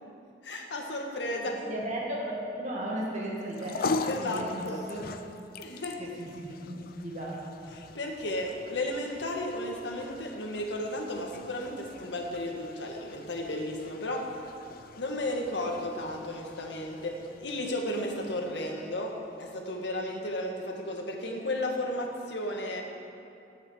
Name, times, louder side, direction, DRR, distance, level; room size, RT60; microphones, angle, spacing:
voice 1, 0.4-1.6 4.1-4.8 5.6-6.0 7.7-14.3 15.0-22.8, left 1 dB, 75° left, 1 dB, 1.7 m, -34 dB
voice 2, 1.5-5.1 6.0-7.4, right 1 dB, 45° right, -4 dB, 2.0 m, -36 dB
sound 1, 3.4-19.9, left 3 dB, 55° left, 0.5 m, -41 dB
10.0 x 8.7 x 7.3 m, 2.6 s
head